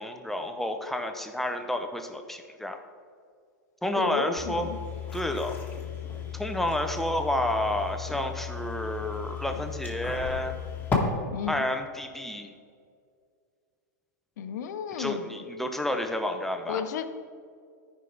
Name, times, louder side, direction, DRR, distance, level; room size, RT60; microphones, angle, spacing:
voice 1, 0.0-2.8 3.8-4.7 5.1-5.6 6.3-10.5 11.5-12.5 15.0-16.8, left 1 dB, 5° left, 5 dB, 0.7 m, -30 dB
voice 2, 4.0-4.8 11.3-11.7 14.4-15.4 16.7-17.0, left 8 dB, 65° left, 9 dB, 0.7 m, -33 dB
sound 1, 4.4-11.0, left 7 dB, 20° left, 1.8 m, -35 dB
13.5 x 5.4 x 3.4 m, 2.2 s
hypercardioid pair, 105°, 10 cm